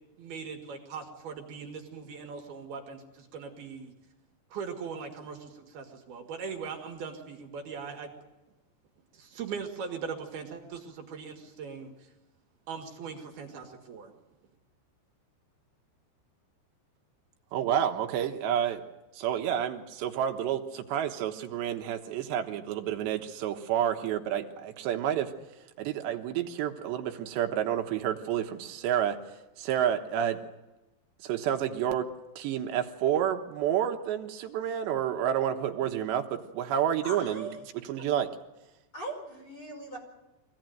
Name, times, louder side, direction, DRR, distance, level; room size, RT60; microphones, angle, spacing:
voice 1, 0.2-3.9 4.5-8.1 9.1-12.1 12.7-14.1, right 6 dB, 65° right, 3 dB, 3.5 m, -40 dB
voice 2, 17.5-18.8 19.1-25.3 25.8-30.4 31.2-32.1 32.4-37.5 37.9-38.3, right 10 dB, 80° right, 5 dB, 3.4 m, -29 dB
voice 3, 37.0-37.6 38.9-40.0, right 2 dB, 20° left, 1 dB, 5.7 m, -39 dB
24.5 x 18.0 x 9.2 m, 1.0 s
omnidirectional pair, 5.0 m